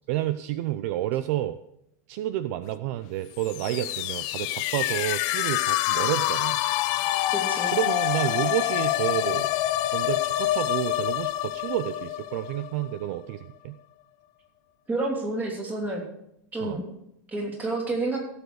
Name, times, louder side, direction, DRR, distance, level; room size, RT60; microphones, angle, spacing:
voice 1, 0.1-1.6 2.1-6.6 7.7-9.5 9.9-13.8 16.6-16.8, right 13 dB, 55° right, 13 dB, 0.5 m, -30 dB
sound 1, 3.4-13.1, left 16 dB, 45° left, 0.6 m, -27 dB
voice 2, 7.3-7.7 14.9-16.0 16.5-16.9 17.3-18.2, right 2 dB, 15° right, 0 dB, 3.1 m, -29 dB
16.5 x 7.0 x 4.8 m, 0.80 s
supercardioid pair, 145°, 10 cm